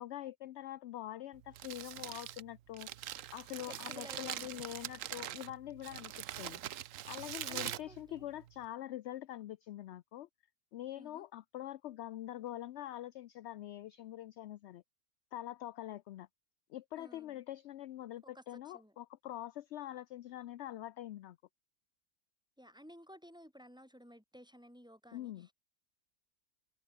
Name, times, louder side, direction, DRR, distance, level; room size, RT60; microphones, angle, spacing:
voice 1, 0.0-2.9 3.3-6.6 7.1-10.3 10.7-14.8 15.3-16.3 16.7-21.4 25.1-25.5, left 13 dB, 65° left, 0.7 m, -44 dB
Crumpling crinkling, 1.3-8.7, right 12 dB, 65° right, 1.0 m, -44 dB
voice 2, 3.7-4.6 7.5-8.2 10.9-11.2 17.0-17.4 18.2-18.9 22.6-25.5, equal, 5° right, 6.4 m, -55 dB
omnidirectional pair, 1.5 m